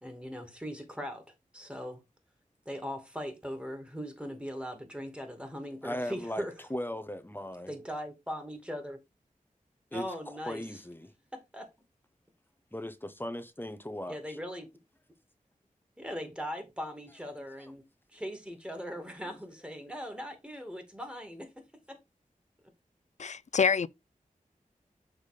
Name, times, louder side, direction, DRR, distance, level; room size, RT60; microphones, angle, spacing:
voice 1, 0.0-1.2 1.5-2.0 2.7-6.5 7.7-9.0 9.9-10.8 11.3-11.7 14.1-14.7 16.0-17.9 18.1-22.0, equal, 5° right, 2.3 m, -40 dB
voice 2, 5.8-6.4 6.7-7.7 9.9-11.1 12.7-14.4, left 1 dB, 15° left, 0.9 m, -38 dB
voice 3, 23.2-23.9, left 6 dB, 55° left, 0.4 m, -26 dB
6.7 x 3.6 x 4.9 m
wide cardioid pair, 65°, 14 cm